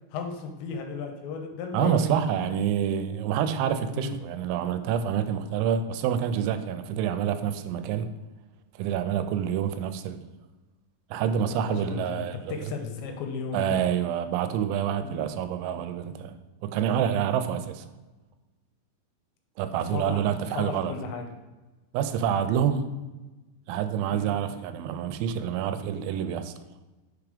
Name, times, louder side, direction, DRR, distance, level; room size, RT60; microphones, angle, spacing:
voice 1, 0.1-2.6 3.9-4.2 11.7-13.8 15.0-15.2 19.9-20.2 20.5-21.3 24.1-24.3, left 5 dB, 85° left, 4 dB, 2.9 m, -35 dB
voice 2, 1.7-8.1 8.8-10.2 11.1-12.6 13.5-16.4 16.6-17.9 19.6-20.9 21.9-22.9 23.7-26.5, right 9 dB, 85° right, 10 dB, 2.9 m, -27 dB
6.4 x 3.5 x 4.9 m, 1.1 s
omnidirectional pair, 5.3 m